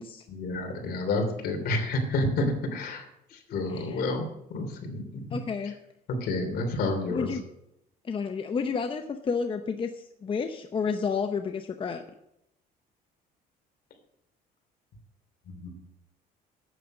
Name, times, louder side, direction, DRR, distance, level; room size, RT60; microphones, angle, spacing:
voice 1, 0.3-3.1 3.5-5.4 6.2-7.3 15.5-15.7, left 2 dB, 65° left, 4 dB, 3.1 m, -29 dB
voice 2, 3.7-4.0 5.3-5.7 7.1-7.4 8.0-12.0, left 5 dB, 30° left, 6 dB, 0.7 m, -31 dB
9.5 x 8.8 x 6.2 m, 0.81 s
cardioid pair, 110°, 17 cm